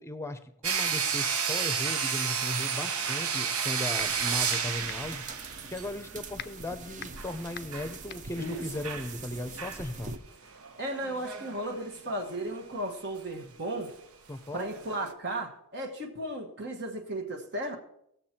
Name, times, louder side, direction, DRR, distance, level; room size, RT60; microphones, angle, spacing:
voice 1, 0.0-10.1 14.3-14.7, left 1 dB, 10° left, 0.7 m, -37 dB
sound 1, 0.6-6.0 6.4-6.5 7.0-7.9 8.3-9.1 9.6-9.9 10.5-12.7 13.2-13.3 13.8-13.9 14.6-15.1, right 6 dB, 75° right, 1.0 m, -32 dB
sound 2, 4.0-4.2 4.5-9.5, left 10 dB, 45° left, 0.5 m, -45 dB
sound 3, 4.0-10.2, right 3 dB, 35° right, 0.7 m, -45 dB
voice 2, 10.8-13.9 14.5-17.8, right 1 dB, 50° right, 1.3 m, -35 dB
17.5 x 7.0 x 4.4 m
head